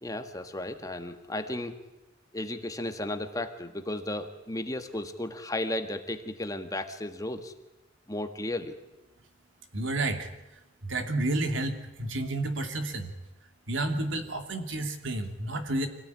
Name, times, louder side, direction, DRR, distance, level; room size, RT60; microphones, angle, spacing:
voice 1, 0.0-1.7 2.3-7.5 8.1-8.7, left 1 dB, 20° left, 7 dB, 1.6 m, -34 dB
voice 2, 9.7-10.3 10.8-13.1 13.7-15.9, right 2 dB, 75° right, 6 dB, 2.8 m, -30 dB
25.5 x 17.5 x 9.6 m, 0.96 s
head